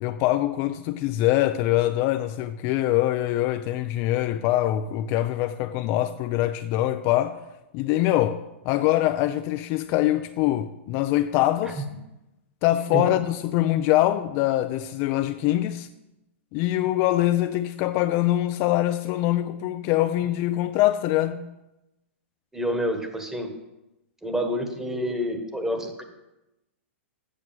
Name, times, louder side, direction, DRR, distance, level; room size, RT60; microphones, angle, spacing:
voice 1, 0.0-7.4 7.7-11.8 12.6-15.9 16.5-21.4, left 14 dB, 40° left, 0.4 m, -24 dB
voice 2, 22.5-23.5 24.2-26.0, equal, 5° right, 1.4 m, -28 dB
8.1 x 6.3 x 7.4 m
hypercardioid pair, 125°, 7 cm